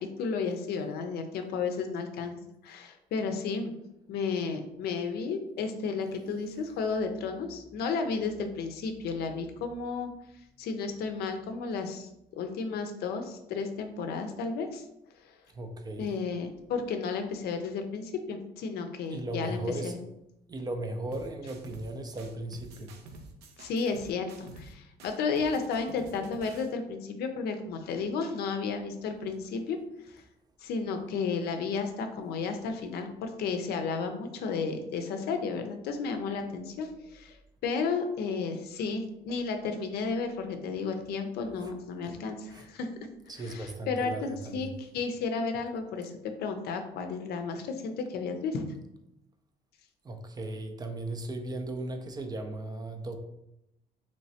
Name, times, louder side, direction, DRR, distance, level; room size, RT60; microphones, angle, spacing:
voice 1, 0.0-2.4 2.6-3.7 4.1-10.1 10.6-12.1 12.4-14.8 16.0-20.0 23.6-29.8 30.1-30.2 30.6-37.4 37.6-42.9 43.5-48.6, left 4 dB, 70° left, 6 dB, 0.5 m, -33 dB
voice 2, 15.5-16.1 19.1-20.0 20.5-23.0 39.3-39.4 41.6-41.7 42.5-42.7 43.3-44.7 50.0-53.2, right 2 dB, 25° right, 6 dB, 0.4 m, -37 dB
sound 1, 21.1-21.9 22.2-24.7 25.0-26.7, right 3 dB, 80° right, 0.6 m, -49 dB
3.1 x 3.1 x 2.7 m, 0.85 s
cardioid pair, 110°, 17 cm